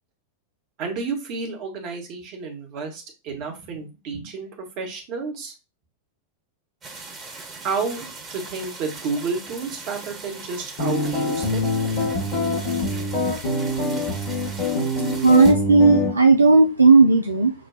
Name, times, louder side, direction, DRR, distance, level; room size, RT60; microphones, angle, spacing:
voice 1, 0.8-5.5 7.4-11.6, right 4 dB, 40° right, 2 dB, 1.1 m, -31 dB
sound 1, 6.8-15.5, right 3 dB, 20° right, 1.1 m, -39 dB
sound 2, 10.8-16.1, left 2 dB, 50° left, 1.2 m, -24 dB
voice 2, 15.2-17.5, right 4 dB, 75° right, 4 dB, 0.3 m, -14 dB
6.2 x 2.2 x 2.4 m, 0.29 s
figure-of-eight pair, 90°, 0 cm